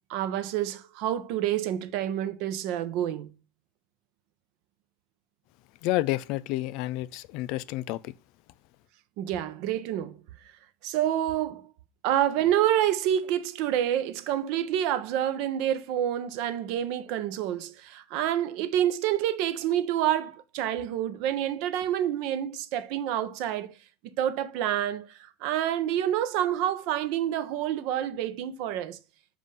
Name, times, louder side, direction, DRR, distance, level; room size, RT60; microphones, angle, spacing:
voice 1, 0.1-3.3 9.2-10.2 10.8-11.7 12.0-23.7 24.2-29.0, right 11 dB, 55° right, 0.6 m, -28 dB
voice 2, 5.8-8.1, left 16 dB, 55° left, 0.3 m, -30 dB
7.4 x 2.5 x 5.4 m
supercardioid pair, 155°, 0 cm